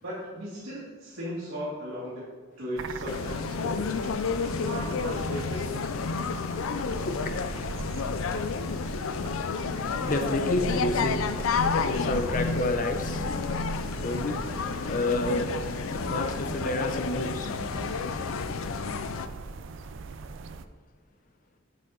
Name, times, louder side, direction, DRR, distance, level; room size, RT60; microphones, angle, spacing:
voice 1, 0.0-2.2 2.6-4.0 4.3-5.9, equal, 85° right, -10 dB, 2.2 m, -37 dB
sound 1, 2.8-20.6, right 3 dB, 65° right, 0.4 m, -40 dB
sound 2, 3.1-19.3, left 5 dB, 80° left, 0.4 m, -31 dB
voice 2, 6.3-6.6 7.1-7.2 9.6-18.2, left 1 dB, 40° left, 6 dB, 0.6 m, -31 dB
7.7 x 6.6 x 3.8 m, 1.4 s
head